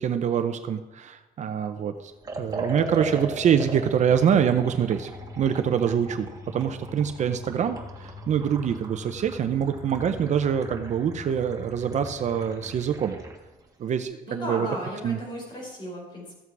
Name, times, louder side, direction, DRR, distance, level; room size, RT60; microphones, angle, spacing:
voice 1, 0.0-2.1 2.4-5.1 5.4-13.2 13.8-14.7 15.0-15.2, right 8 dB, 50° right, 9 dB, 0.7 m, -25 dB
Liquid, 2.2-13.4, right 2 dB, 25° right, 1.6 m, -39 dB
sound 1, 2.3-12.8, left 5 dB, 5° left, 3.1 m, -44 dB
voice 2, 14.3-16.4, equal, 30° left, -2 dB, 4.7 m, -35 dB
13.5 x 8.2 x 4.7 m, 1.1 s
cardioid pair, 150°, 16 cm